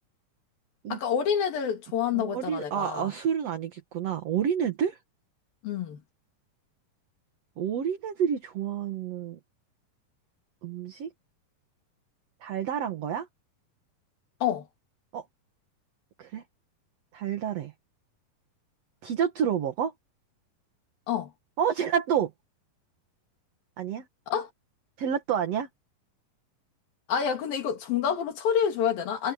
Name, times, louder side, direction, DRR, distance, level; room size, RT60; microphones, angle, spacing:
voice 1, 0.9-3.1 5.6-6.0 14.4-14.7 21.1-21.3 24.3-24.5 27.1-29.3, left 8 dB, 85° left, 4.4 m, -28 dB
voice 2, 2.1-5.0 7.6-9.4 10.6-11.1 12.4-13.3 15.1-15.2 16.2-16.4 17.1-17.7 19.0-19.9 21.6-22.3 23.8-24.1 25.0-25.7, right 8 dB, 55° right, 2.4 m, -29 dB
omnidirectional pair, 4.0 m